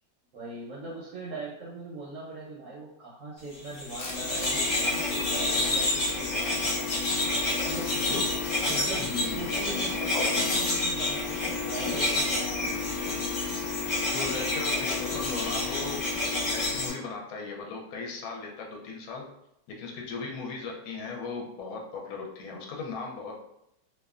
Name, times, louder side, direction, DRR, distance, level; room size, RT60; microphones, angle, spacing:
voice 1, 0.3-7.1 7.6-8.3 8.6-13.1, right 2 dB, 65° right, -6 dB, 0.8 m, -41 dB
sound 1, 3.6-16.9, left 2 dB, 45° left, 0.6 m, -28 dB
Tools, 4.0-4.8 5.3-5.9 6.4-6.8 7.4-7.9 8.4-8.8, left 3 dB, 90° left, 0.6 m, -43 dB
voice 2, 9.0-9.4 14.1-16.0 16.5-19.3 19.8-23.3, left 4 dB, 70° left, -1 dB, 1.0 m, -37 dB
2.7 x 2.1 x 2.3 m, 0.80 s
omnidirectional pair, 1.9 m